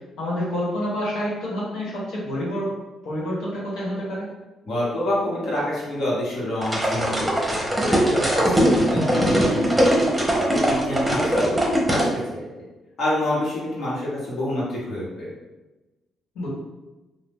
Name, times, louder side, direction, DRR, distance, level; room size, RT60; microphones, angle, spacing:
voice 1, 0.2-2.7 3.0-4.3 11.1-11.2 16.3-16.5, equal, 90° left, -6 dB, 1.3 m, -28 dB
voice 2, 4.6-9.2 9.5-9.9 10.5-12.4 13.0-15.3, left 1 dB, 65° left, -7 dB, 1.4 m, -27 dB
sound 1, 6.6-12.1, right 1 dB, 10° right, 0.8 m, -20 dB
2.7 x 2.3 x 3.6 m, 1.1 s
cardioid pair, 90°, 0 cm